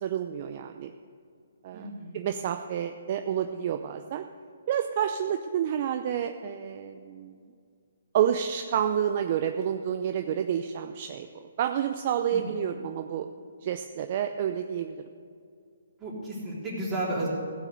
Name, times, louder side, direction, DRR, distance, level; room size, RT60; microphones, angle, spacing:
voice 1, 0.0-0.9 1.6-4.2 4.7-7.3 8.1-11.3 11.6-13.3 13.6-15.0, right 9 dB, 40° right, 7 dB, 0.5 m, -29 dB
voice 2, 1.7-2.3 12.3-12.4 16.0-17.3, right 1 dB, 15° right, -6 dB, 3.7 m, -33 dB
16.0 x 6.2 x 7.9 m, 2.3 s
hypercardioid pair, 150°, 0 cm